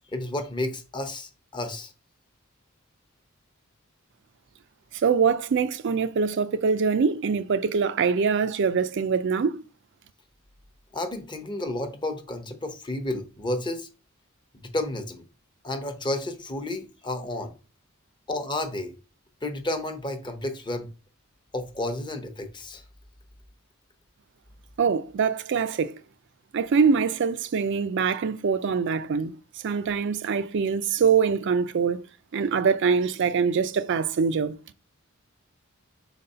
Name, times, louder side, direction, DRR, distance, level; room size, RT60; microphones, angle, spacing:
voice 1, 0.1-1.9 10.9-13.9 14.5-15.2 15.6-17.5 18.3-18.9 19.4-20.9 21.5-22.8, left 1 dB, 20° left, 0.8 m, -31 dB
voice 2, 4.9-9.6 24.8-25.9 26.5-29.3 29.6-32.1 32.3-34.6, right 5 dB, 60° right, 0.4 m, -24 dB
4.6 x 4.0 x 5.4 m
head